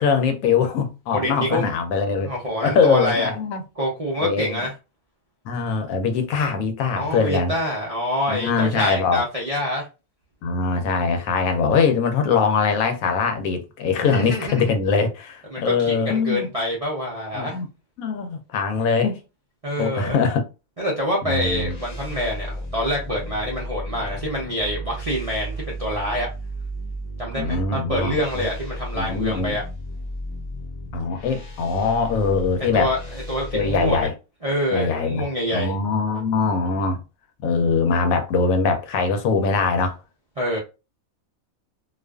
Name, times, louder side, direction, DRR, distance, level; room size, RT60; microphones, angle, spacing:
voice 1, 0.0-2.3 2.6-3.6 4.2-4.6 5.4-7.5 8.3-9.2 10.4-16.5 17.3-17.7 18.0-19.2 19.8-20.4 21.2-21.7 27.3-28.5 28.9-29.5 30.9-32.9 33.5-34.1 34.7-35.2 35.5-37.0 37.4-40.0, left 5 dB, 80° left, 1.0 m, -22 dB
voice 2, 1.1-1.6 2.2-3.3 3.8-4.7 7.0-9.9 14.0-14.6 15.5-17.6 19.6-20.2 20.8-26.3 27.2-29.6 32.7-34.1 34.4-35.8 40.4-40.6, equal, 50° right, 0.4 m, -26 dB
sound 1, 21.2-34.1, equal, 50° left, 0.5 m, -34 dB
2.4 x 2.4 x 2.2 m
omnidirectional pair, 1.5 m